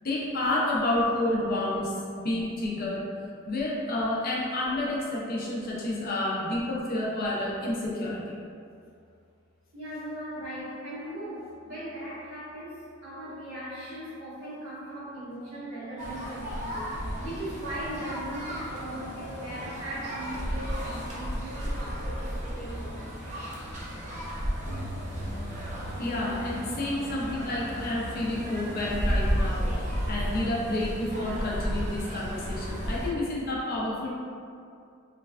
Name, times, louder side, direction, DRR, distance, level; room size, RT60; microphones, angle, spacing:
voice 1, 0.0-3.0 3.5-8.4 26.0-34.1, left 1 dB, 45° left, -5 dB, 0.5 m, -30 dB
voice 2, 9.7-23.2, right 1 dB, 75° right, -10 dB, 1.1 m, -39 dB
sound 1, 16.0-33.1, equal, 35° right, 0.5 m, -33 dB
3.2 x 2.2 x 2.3 m, 2.4 s
head